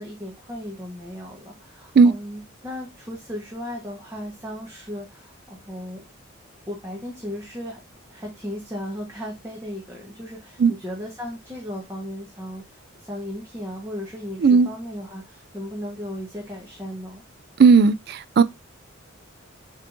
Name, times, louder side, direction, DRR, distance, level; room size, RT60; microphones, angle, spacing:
voice 1, 0.0-6.0 6.7-7.8 8.1-17.2, equal, 15° right, 1.0 m, -36 dB
voice 2, 17.6-18.4, right 5 dB, 50° right, 0.3 m, -15 dB
6.7 x 3.1 x 2.4 m
head